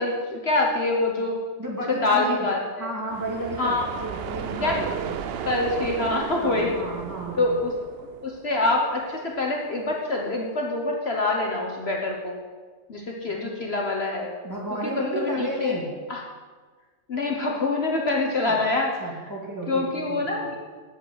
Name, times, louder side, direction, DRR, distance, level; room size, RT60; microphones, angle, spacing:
voice 1, 0.0-1.4 1.9-2.9 3.6-3.9 4.6-4.8 5.4-6.7 7.4-7.7 8.2-12.4 12.9-14.3 14.8-15.8 16.1-16.2 17.1-18.9 19.7-20.6, left 2 dB, 45° left, 0 dB, 1.3 m, -25 dB
voice 2, 1.6-2.5 2.8-5.1 6.4-7.6 14.4-15.9 18.4-18.6 19.0-20.5, right 1 dB, 10° right, -3 dB, 2.5 m, -32 dB
sound 1, 3.1-8.8, right 8 dB, 60° right, 0.7 m, -34 dB
8.8 x 7.9 x 7.8 m, 1.4 s
omnidirectional pair, 1.5 m